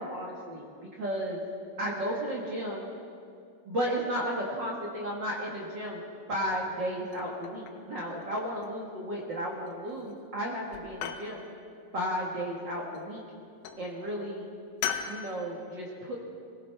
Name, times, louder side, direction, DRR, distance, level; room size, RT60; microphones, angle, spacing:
voice 1, 0.0-1.4 1.8-2.9 3.6-6.0 6.3-11.4 11.9-13.2 13.8-14.5 15.1-16.1, equal, 45° right, -3 dB, 1.5 m, -33 dB
sound 1, 7.1-7.9 8.2-8.9 9.7-10.1 10.4-11.3 12.7-13.3 13.6-13.9 14.8-15.2, left 8 dB, 80° left, 2.5 m, -37 dB
22.0 x 16.5 x 3.4 m, 2.4 s
omnidirectional pair, 4.2 m